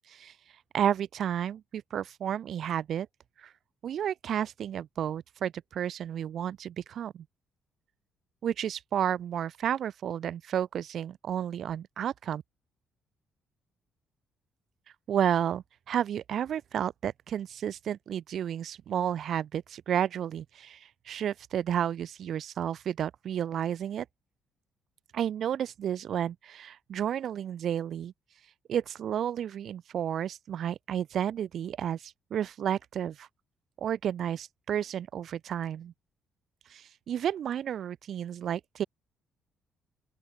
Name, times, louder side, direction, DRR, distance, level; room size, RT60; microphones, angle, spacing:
voice 1, 0.7-3.1 3.4-3.5 3.8-7.2 8.4-12.4 15.1-20.8 21.1-24.1 25.1-28.1 28.7-33.3 33.8-35.9 36.7-38.8, right 9 dB, 60° right, 2.0 m, -31 dB
open air
cardioid pair, 125°, 0 cm